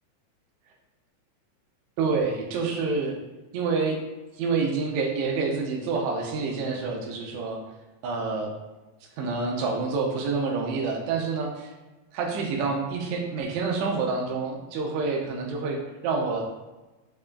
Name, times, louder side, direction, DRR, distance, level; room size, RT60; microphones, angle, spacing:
voice 1, 2.0-3.2 3.5-4.0 4.4-7.6 8.0-8.5 9.2-11.7 12.1-16.4, right 4 dB, 80° right, 0 dB, 1.7 m, -27 dB
4.9 x 2.3 x 2.2 m, 1.1 s
omnidirectional pair, 3.5 m